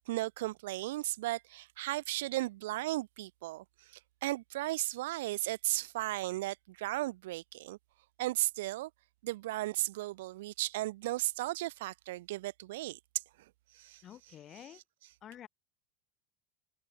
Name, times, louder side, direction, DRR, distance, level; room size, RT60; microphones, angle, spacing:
voice 1, 0.0-7.8 8.2-8.9 9.2-13.0 13.7-14.8, right 17 dB, 85° right, 3.7 m, -36 dB
voice 2, 14.0-14.8 15.2-15.5, left 11 dB, 30° left, 4.0 m, -49 dB
open air
supercardioid pair, 150°, 0 cm